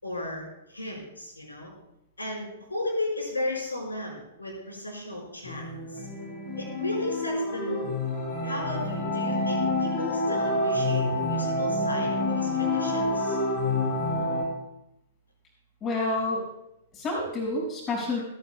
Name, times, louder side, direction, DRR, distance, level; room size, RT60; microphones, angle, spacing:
voice 1, 0.0-1.7 2.2-6.1 6.6-8.0 8.4-13.4, left 1 dB, 85° left, -1 dB, 4.8 m, -35 dB
sound 1, 5.4-14.4, left 2 dB, 40° left, 6.2 m, -28 dB
voice 2, 15.8-16.4 16.9-18.2, left 2 dB, 25° left, -2 dB, 5.8 m, -28 dB
29.5 x 9.9 x 2.2 m, 0.85 s
figure-of-eight pair, 110°, 0 cm